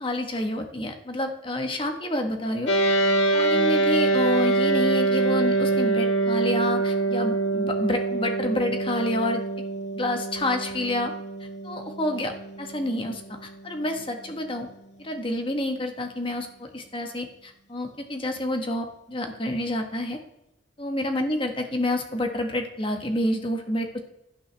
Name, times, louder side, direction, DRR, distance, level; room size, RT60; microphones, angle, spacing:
voice 1, 0.0-2.7 3.3-9.4 9.9-11.1 11.6-12.3 12.6-14.7 15.0-20.2 20.8-23.9, left 1 dB, 25° left, 4 dB, 1.4 m, -28 dB
sound 1, 2.7-14.2, right 3 dB, 80° left, 1.5 m, -25 dB
16.0 x 11.5 x 3.4 m, 0.89 s
head